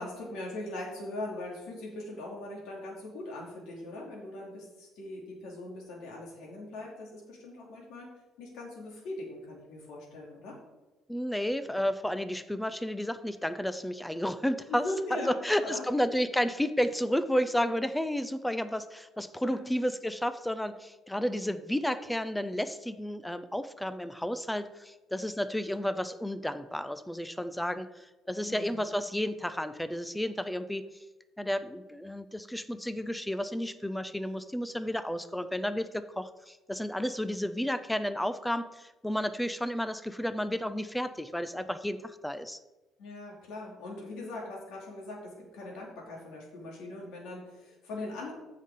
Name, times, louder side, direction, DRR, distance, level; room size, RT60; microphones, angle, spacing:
voice 1, 0.0-8.1 8.4-10.5 14.7-15.8 19.4-19.7 28.4-28.9 43.0-48.3, left 2 dB, 70° left, -3 dB, 2.6 m, -40 dB
voice 2, 11.1-30.8 31.4-42.6, equal, 5° left, 12 dB, 0.4 m, -32 dB
14.5 x 5.6 x 3.7 m, 1.1 s
cardioid pair, 175°, 0 cm